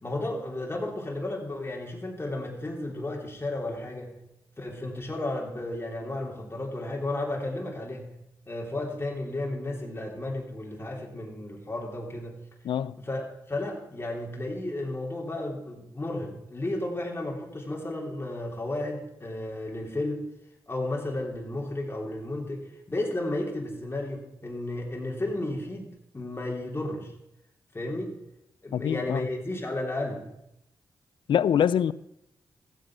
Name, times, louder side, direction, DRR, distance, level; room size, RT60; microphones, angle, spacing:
voice 1, 0.0-4.2 4.6-8.1 8.5-12.4 13.0-20.2 20.7-25.9 26.1-27.1 27.7-28.2 28.6-30.3, left 1 dB, 30° left, 3.2 m, -33 dB
voice 2, 12.6-13.0 28.7-29.2 31.3-31.9, left 9 dB, 80° left, 0.4 m, -24 dB
14.0 x 8.0 x 6.2 m
cardioid pair, 50°, 8 cm